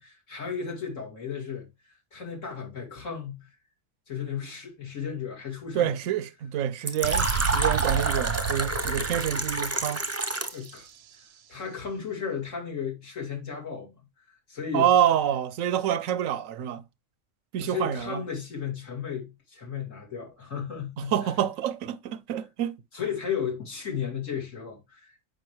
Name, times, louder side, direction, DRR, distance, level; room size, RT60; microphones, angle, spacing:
voice 1, 0.0-3.5 4.1-5.9 10.3-10.9 11.5-13.9 14.5-14.9 17.6-21.3 22.9-25.3, left 7 dB, 70° left, 2.9 m, -34 dB
voice 2, 5.7-10.0 14.7-16.8 17.5-18.2 21.0-22.8, right 10 dB, 85° right, 1.0 m, -27 dB
Fill (with liquid), 6.9-10.7, right 2 dB, 15° right, 0.6 m, -28 dB
sound 1, 7.0-10.8, right 7 dB, 60° right, 0.8 m, -31 dB
7.7 x 5.2 x 3.1 m
omnidirectional pair, 1.3 m